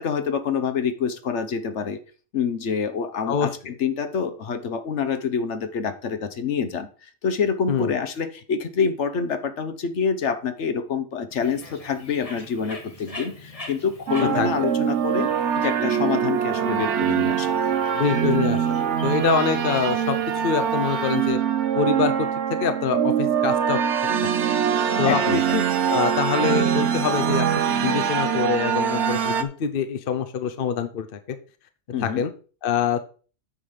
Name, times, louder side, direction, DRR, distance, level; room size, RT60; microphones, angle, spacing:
voice 1, 0.0-2.0 2.3-15.3 15.5-17.5 25.0-25.6 31.9-32.2, left 6 dB, 70° left, 9 dB, 1.2 m, -26 dB
Bird, 11.3-21.3, left 2 dB, 30° left, 1.9 m, -44 dB
sound 1, 14.1-29.4, right 8 dB, 75° right, 1.1 m, -23 dB
voice 2, 14.2-14.7 17.9-18.8 19.0-20.2 20.4-21.4 21.7-23.8 24.2-24.3 25.0-31.1 32.0-32.3 32.6-33.0, left 7 dB, 55° left, 9 dB, 0.9 m, -25 dB
8.8 x 5.1 x 5.6 m, 0.38 s
omnidirectional pair, 1.2 m